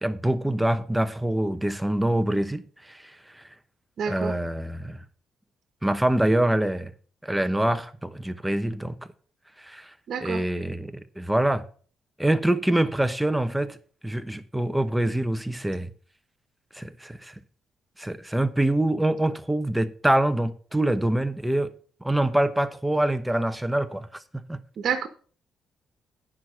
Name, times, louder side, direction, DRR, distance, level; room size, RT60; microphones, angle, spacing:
voice 1, 0.0-3.4 4.1-5.0 5.8-6.9 7.2-8.9 9.6-9.9 10.2-11.6 12.2-13.8 14.0-15.9 16.7-17.3 18.0-21.7 22.0-24.1 24.3-24.6, right 1 dB, 5° right, 1.0 m, -25 dB
voice 2, 4.0-4.4 10.1-10.4 24.8-25.1, right 7 dB, 60° right, 1.3 m, -28 dB
9.5 x 6.1 x 6.4 m
cardioid pair, 90°, 0 cm